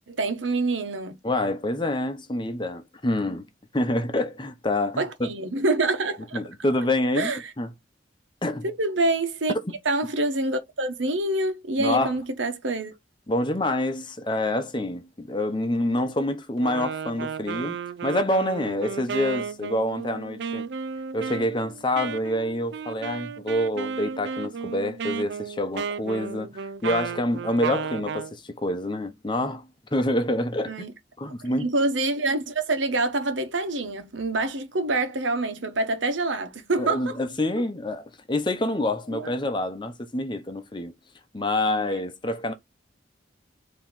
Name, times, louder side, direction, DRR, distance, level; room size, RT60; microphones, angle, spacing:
voice 1, 0.1-1.2 5.0-6.4 7.2-7.4 8.6-9.5 9.8-12.9 30.7-30.9 31.4-37.2 39.1-39.3, right 2 dB, 85° right, 1.2 m, -26 dB
voice 2, 1.2-3.4 3.7-5.3 6.3-7.7 8.4-8.7 9.6-9.7 11.8-12.2 13.3-17.8 18.0-20.7 21.1-30.8 31.2-31.7 36.8-40.9 41.3-42.5, left 1 dB, 25° left, 0.8 m, -27 dB
Wind instrument woodwind instrument, 16.6-28.3, right 6 dB, 65° right, 0.4 m, -33 dB
4.4 x 3.1 x 3.7 m
head